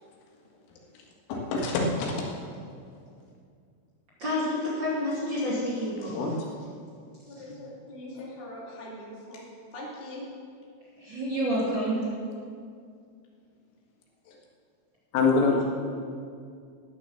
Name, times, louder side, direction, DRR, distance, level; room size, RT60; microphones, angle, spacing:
voice 1, 1.3-2.3 6.1-6.5 8.2-8.3 14.3-14.4 15.1-15.6, left 4 dB, 85° left, -1 dB, 4.4 m, -25 dB
voice 2, 4.2-6.2 11.0-12.0, equal, 35° right, -7 dB, 2.2 m, -28 dB
voice 3, 7.3-10.3 15.3-15.6, left 1 dB, 35° left, -4 dB, 0.9 m, -41 dB
11.5 x 9.6 x 7.1 m, 2.3 s
omnidirectional pair, 5.7 m